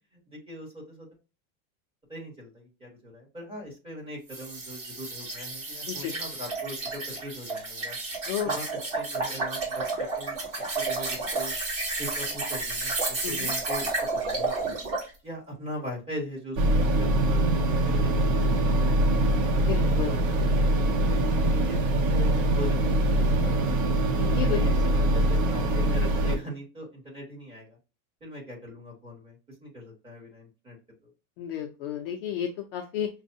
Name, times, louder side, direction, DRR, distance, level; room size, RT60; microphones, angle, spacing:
voice 1, 0.1-1.1 2.1-8.0 8.4-8.7 8.9-10.4 10.8-11.5 12.0-14.8 15.2-19.2 19.8-21.8 22.1-22.9 23.2-24.0 24.5-27.8 28.2-30.8, equal, 10° right, -3 dB, 1.4 m, -40 dB
sound 1, 4.3-15.1, right 3 dB, 35° right, 2.1 m, -31 dB
sound 2, 16.6-26.4, right 1 dB, 65° right, 0.8 m, -23 dB
voice 2, 19.6-20.2 24.2-24.6 31.4-33.1, left 9 dB, 40° left, 3 dB, 0.5 m, -32 dB
6.0 x 2.3 x 2.7 m, 0.30 s
supercardioid pair, 175°, 42 cm